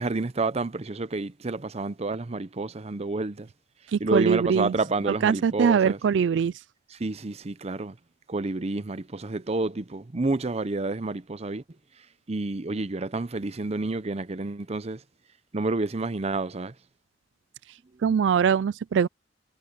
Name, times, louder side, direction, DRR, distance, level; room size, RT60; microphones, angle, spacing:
voice 1, 0.0-3.5 4.0-6.0 6.9-7.9 8.3-11.6 12.3-15.0 15.5-16.7, right 3 dB, 35° right, 0.7 m, -29 dB
voice 2, 3.9-4.7 5.1-6.5 18.0-19.1, right 7 dB, 80° right, 0.4 m, -22 dB
head